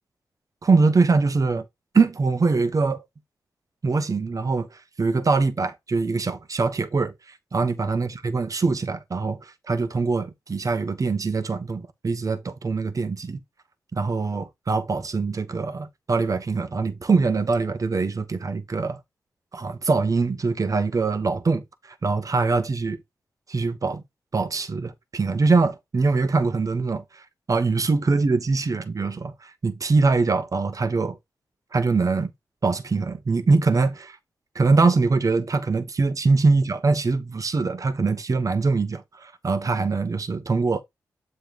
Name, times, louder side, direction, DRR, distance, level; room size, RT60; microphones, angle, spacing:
voice 1, 0.6-1.6 1.9-3.0 3.8-7.1 7.5-13.4 13.9-19.0 19.5-23.0 23.5-24.0 24.3-31.2 31.7-32.3 32.6-34.2 34.5-40.8, right 4 dB, 50° right, 1.1 m, -23 dB
7.6 x 3.2 x 5.2 m
supercardioid pair, 40°, 7 cm